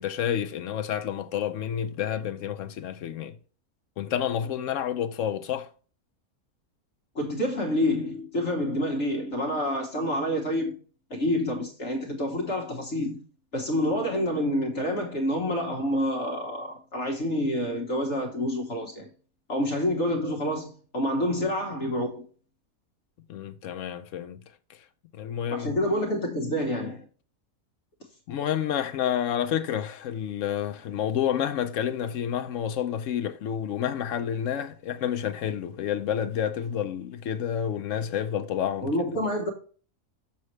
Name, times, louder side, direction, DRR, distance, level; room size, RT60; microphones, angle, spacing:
voice 1, 0.0-3.4 4.0-5.7 23.3-24.4 24.7-24.9 25.1-25.8 28.3-38.9, left 9 dB, 70° left, 0.8 m, -29 dB
voice 2, 7.1-10.7 11.1-13.2 13.5-19.1 19.5-22.2 25.5-27.0 38.8-39.5, left 1 dB, 50° left, 1.5 m, -28 dB
6.9 x 6.4 x 3.2 m
omnidirectional pair, 1.6 m